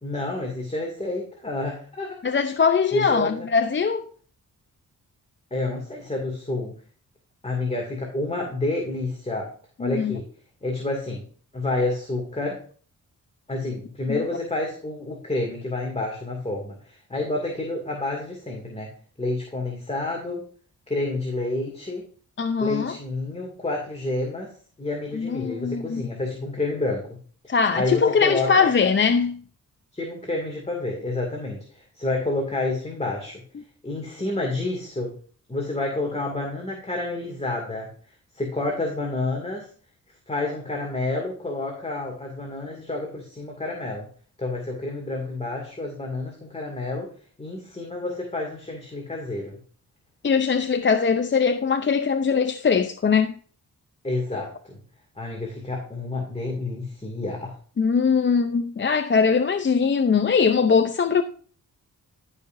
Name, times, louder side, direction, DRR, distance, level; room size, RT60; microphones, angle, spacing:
voice 1, 0.0-2.2 2.9-3.5 5.5-6.7 7.4-9.5 9.8-10.3 10.6-11.2 11.5-12.6 13.5-18.9 19.2-20.4 20.9-22.0 22.6-24.5 24.8-27.1 27.7-28.7 29.9-33.4 33.8-35.1 35.5-37.9 38.3-39.7 40.3-44.1 44.4-47.1 47.4-49.6 54.0-54.8 55.2-57.5, left 2 dB, 20° left, 2.4 m, -29 dB
voice 2, 2.2-4.1 9.8-10.2 14.1-14.2 22.4-23.0 25.1-26.1 27.5-29.4 50.2-53.4 54.3-54.4 57.8-61.2, left 5 dB, 35° left, 0.6 m, -21 dB
14.0 x 5.7 x 2.6 m
cardioid pair, 75°, 34 cm